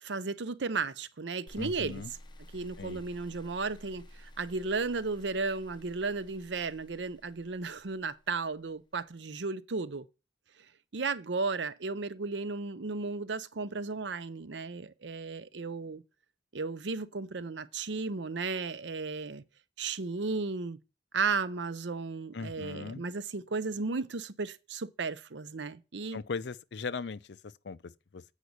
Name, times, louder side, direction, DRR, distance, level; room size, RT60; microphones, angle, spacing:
voice 1, 0.0-2.0 2.5-10.1 10.9-16.0 16.5-19.4 19.8-20.8 21.1-26.2, right 4 dB, 85° right, 0.7 m, -34 dB
sound 1, 1.5-8.6, left 1 dB, 25° left, 0.8 m, -53 dB
voice 2, 1.6-2.1 2.8-3.0 22.3-23.0 26.1-28.2, left 4 dB, 80° left, 0.6 m, -39 dB
8.3 x 5.3 x 6.2 m
head